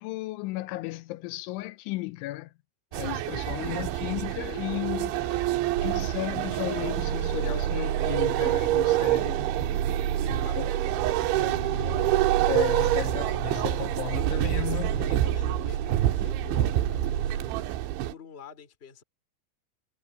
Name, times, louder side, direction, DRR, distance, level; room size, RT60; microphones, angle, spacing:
voice 1, 0.0-2.5 2.9-5.2 5.8-9.5 10.3-10.7 12.5-15.1, left 18 dB, 85° left, 3.1 m, -34 dB
sound 1, 2.9-18.1, right 15 dB, 80° right, 3.2 m, -27 dB
voice 2, 5.0-5.6 10.2-12.2 14.7-17.8 18.1-19.0, left 6 dB, 20° left, 1.9 m, -48 dB
sound 2, 5.7-17.4, right 8 dB, 60° right, 4.5 m, -32 dB
sound 3, 10.9-13.8, right 1 dB, 10° right, 7.3 m, -44 dB
omnidirectional pair, 5.6 m